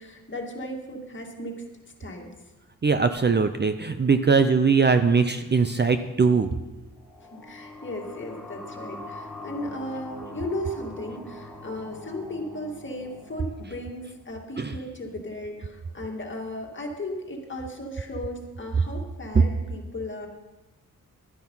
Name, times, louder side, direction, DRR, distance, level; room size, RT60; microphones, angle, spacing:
voice 1, 0.0-1.6 2.0-2.3 7.2-20.3, left 1 dB, 35° left, 1 dB, 2.2 m, -36 dB
voice 2, 2.8-6.5 14.6-14.7, right 5 dB, 30° right, 9 dB, 0.6 m, -21 dB
sound 1, 6.9-14.4, left 1 dB, ahead, 1.9 m, -43 dB
11.5 x 10.5 x 5.5 m, 1.1 s
wide cardioid pair, 100°, 34 cm